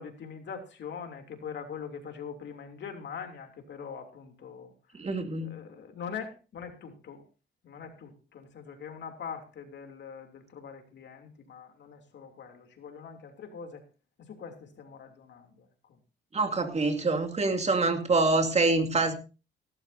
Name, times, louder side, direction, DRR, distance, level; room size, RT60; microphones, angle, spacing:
voice 1, 0.0-5.1 5.4-7.2 7.6-13.8 14.2-16.0, left 6 dB, 65° left, 4 dB, 3.0 m, -43 dB
voice 2, 4.9-5.6 16.3-19.1, right 3 dB, 35° right, 5 dB, 2.6 m, -26 dB
17.5 x 12.0 x 2.7 m, 0.33 s
cardioid pair, 90°, 20 cm